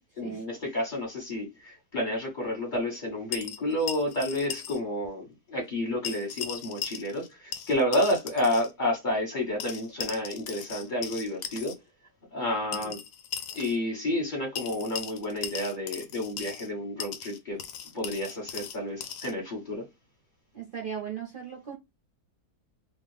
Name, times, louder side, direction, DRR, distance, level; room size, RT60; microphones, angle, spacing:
voice 1, 0.2-11.7 12.3-13.0 13.5-17.6 17.9-19.8, left 1 dB, 35° left, 1.2 m, -30 dB
sound 1, 3.3-4.8 5.0-5.1 6.0-7.3 7.5-8.7 9.6-11.7 12.7-13.8 14.6-16.7 17.0-19.3, left 8 dB, 90° left, 1.2 m, -38 dB
voice 2, 20.5-21.8, right 7 dB, 50° right, 0.6 m, -38 dB
2.8 x 2.4 x 3.2 m
omnidirectional pair, 1.7 m